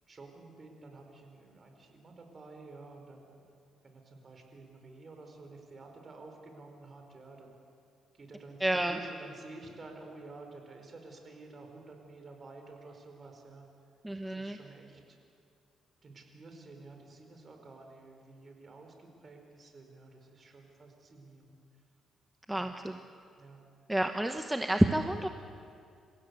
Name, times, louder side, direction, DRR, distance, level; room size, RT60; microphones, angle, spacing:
voice 1, 0.1-3.4 3.8-7.6 8.1-13.7 14.2-15.2 16.0-21.8 22.5-22.8 23.4-23.7, right 3 dB, 40° right, 4 dB, 4.6 m, -51 dB
voice 2, 8.6-9.0 14.0-14.6 22.5-23.0 23.9-25.3, right 1 dB, 10° right, 6 dB, 1.0 m, -29 dB
28.0 x 16.0 x 8.2 m, 2.4 s
cardioid pair, 90°, 0 cm